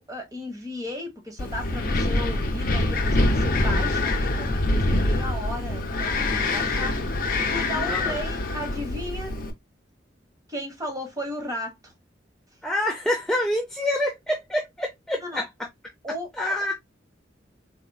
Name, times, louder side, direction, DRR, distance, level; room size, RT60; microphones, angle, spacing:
voice 1, 0.0-7.0 7.5-9.4 10.5-11.9 15.2-15.4 16.0-16.6, left 1 dB, 20° right, 1.2 m, -35 dB
Wind, 1.4-9.5, left 2 dB, 50° left, 0.7 m, -25 dB
voice 2, 12.6-15.5 16.3-16.7, left 1 dB, 5° left, 0.5 m, -26 dB
4.1 x 3.0 x 2.2 m
head